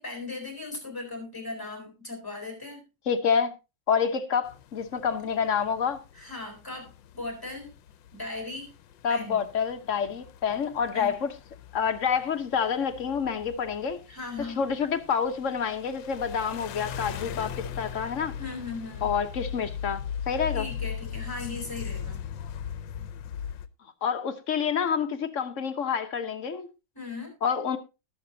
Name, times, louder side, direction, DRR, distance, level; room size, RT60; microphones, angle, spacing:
voice 1, 0.0-2.8 6.1-7.7 8.1-8.7 9.1-9.4 10.9-11.2 14.1-14.6 18.4-19.1 20.5-22.2 26.9-27.3, left 3 dB, 10° left, 4.3 m, -38 dB
voice 2, 3.1-3.5 3.9-6.0 9.0-11.3 11.7-14.0 14.6-18.3 19.0-20.7 24.0-26.7 27.4-27.8, left 7 dB, 50° left, 1.2 m, -28 dB
sound 1, 4.4-23.7, left 8 dB, 80° left, 1.4 m, -40 dB
19.5 x 7.0 x 2.7 m
omnidirectional pair, 2.0 m